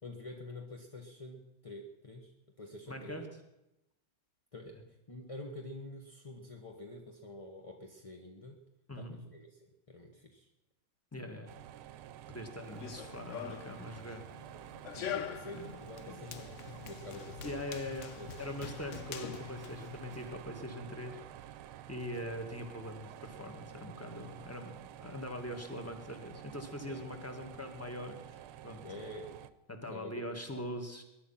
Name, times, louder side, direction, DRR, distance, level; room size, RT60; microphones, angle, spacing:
voice 1, 0.0-3.3 4.5-4.8 5.1-8.6 9.0-10.5 14.9-17.5 18.2-18.3 26.9-27.1 28.8-29.4 29.9-30.1 30.5-30.6, left 2 dB, 25° left, 2 dB, 0.8 m, -47 dB
voice 2, 2.9-3.2 8.9-9.2 11.1-11.5 12.3-14.3 15.5-15.7 16.0-16.2 17.4-21.2 21.9-28.8 29.7-31.0, left 1 dB, 10° left, 5 dB, 1.6 m, -42 dB
sound 1, 11.5-29.5, right 11 dB, 85° right, 1.6 m, -50 dB
Run, 12.6-20.3, left 8 dB, 55° left, 0.8 m, -44 dB
21.0 x 11.0 x 5.8 m, 0.91 s
omnidirectional pair, 2.3 m